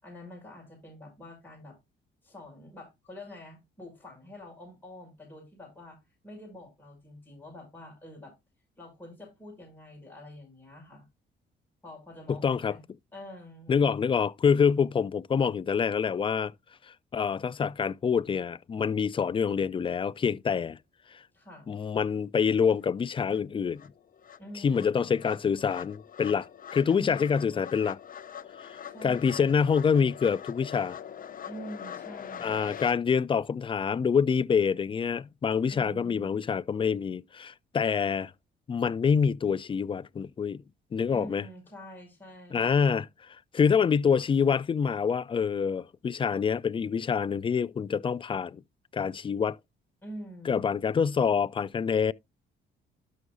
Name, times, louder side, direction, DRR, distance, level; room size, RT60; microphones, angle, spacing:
voice 1, 0.0-1.8 2.2-6.0 6.2-8.3 8.8-11.0 11.8-12.8 13.1-13.8 21.3-21.7 24.4-25.2 26.9-27.7 28.8-29.5 31.4-32.6 35.7-36.4 41.1-42.8 50.0-50.7, equal, 10° left, 6.2 m, -46 dB
voice 2, 12.3-12.8 13.7-16.5 17.1-20.8 21.7-23.8 24.6-26.5 26.7-28.0 29.0-31.0 32.4-38.3 38.7-40.6 40.9-41.5 42.5-43.1 43.5-48.6 48.9-49.6 50.5-52.1, left 6 dB, 25° left, 0.3 m, -26 dB
sound 1, 22.8-22.9 23.3-32.9, left 9 dB, 45° left, 0.7 m, -43 dB
12.5 x 6.2 x 2.6 m
cardioid pair, 90°, 20 cm